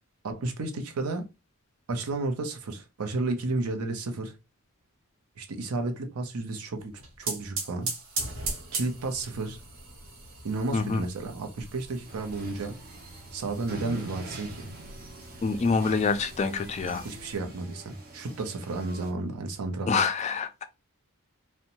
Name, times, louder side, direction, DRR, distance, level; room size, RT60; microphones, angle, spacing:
voice 1, 0.2-1.3 1.9-4.4 5.4-7.9 8.7-9.6 10.4-12.8 13.3-14.7 17.0-20.1, right 3 dB, 90° right, 0.6 m, -32 dB
sound 1, 6.8-17.4, right 3 dB, 65° right, 1.0 m, -40 dB
sound 2, 12.1-19.1, right 2 dB, 45° right, 0.6 m, -44 dB
voice 2, 15.4-17.0 19.9-20.6, left 4 dB, 30° left, 0.3 m, -26 dB
2.6 x 2.1 x 2.9 m
head